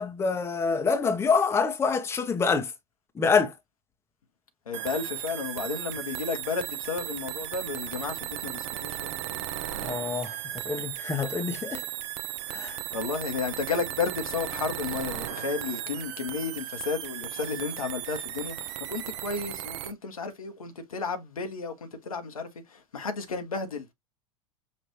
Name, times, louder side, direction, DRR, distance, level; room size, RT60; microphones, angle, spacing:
voice 1, 0.0-2.7 3.2-3.5 9.8-10.4 10.6-11.8 12.5-12.8, left 5 dB, 15° left, 0.7 m, -26 dB
voice 2, 4.7-9.1 12.5-23.9, left 4 dB, 75° left, 1.0 m, -33 dB
sound 1, 4.7-19.9, right 12 dB, 55° right, 0.6 m, -36 dB
5.4 x 2.5 x 3.0 m
figure-of-eight pair, 85°, 18 cm